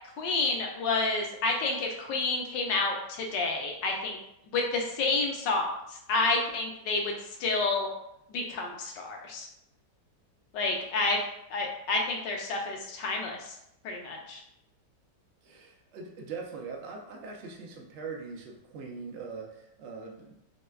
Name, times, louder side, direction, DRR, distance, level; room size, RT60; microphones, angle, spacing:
voice 1, 0.2-4.2 4.5-7.1 7.4-7.9 8.3-9.5 10.5-11.2 11.5-13.5 13.8-14.4, left 3 dB, 80° left, 1 dB, 1.3 m, -29 dB
voice 2, 15.4-20.3, right 4 dB, 80° right, 1 dB, 0.6 m, -41 dB
4.9 x 2.1 x 2.2 m, 0.80 s
omnidirectional pair, 1.9 m